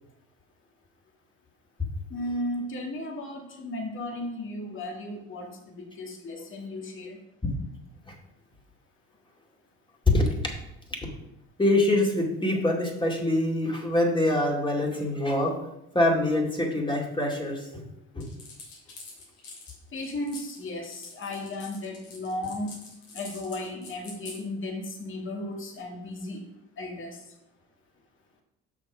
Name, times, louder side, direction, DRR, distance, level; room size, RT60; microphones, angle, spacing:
voice 1, 2.1-7.2 19.9-22.8 23.1-26.4 26.8-27.2, left 1 dB, 45° left, 1 dB, 2.0 m, -35 dB
voice 2, 11.6-15.6 15.9-17.9 18.1-18.3, left 1 dB, 15° left, 0 dB, 2.4 m, -24 dB
sound 1, 18.2-24.4, left 3 dB, 70° left, 3.2 m, -45 dB
6.5 x 6.1 x 5.1 m, 0.84 s
hypercardioid pair, 65°, 30 cm